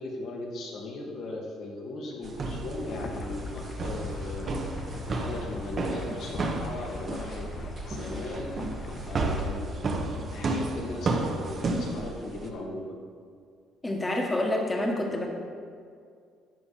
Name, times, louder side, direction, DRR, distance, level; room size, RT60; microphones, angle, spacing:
voice 1, 0.0-4.8 5.2-7.5 7.9-8.5 9.1-12.9, left 2 dB, 65° left, -2 dB, 2.4 m, -38 dB
sound 1, 2.2-12.5, right 2 dB, 40° right, 1.2 m, -32 dB
sound 2, 2.7-9.5, left 3 dB, 40° left, 0.9 m, -39 dB
voice 2, 13.8-15.3, left 1 dB, 15° left, 0 dB, 1.7 m, -27 dB
12.5 x 8.8 x 4.3 m, 2.2 s
cardioid pair, 120°, 0 cm